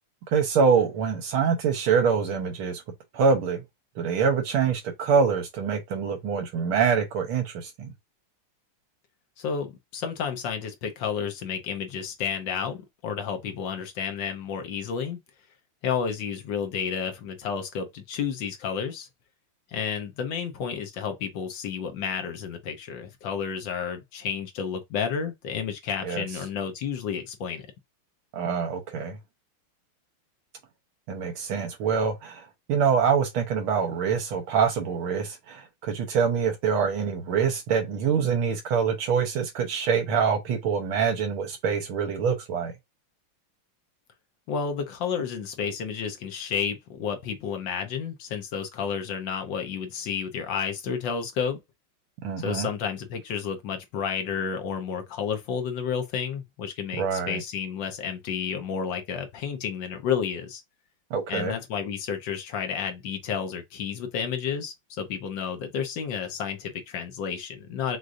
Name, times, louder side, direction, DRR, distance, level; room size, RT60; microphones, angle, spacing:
voice 1, 0.3-2.8 3.1-3.6 4.0-7.9 26.0-26.2 28.3-29.2 31.1-42.7 52.2-52.7 57.0-57.4 61.1-61.5, right 6 dB, 75° right, 1.7 m, -25 dB
voice 2, 9.4-15.2 15.8-19.1 19.7-27.7 44.5-51.6 52.4-60.6 61.3-68.0, left 7 dB, 65° left, 1.4 m, -31 dB
6.3 x 2.5 x 2.5 m
omnidirectional pair, 2.4 m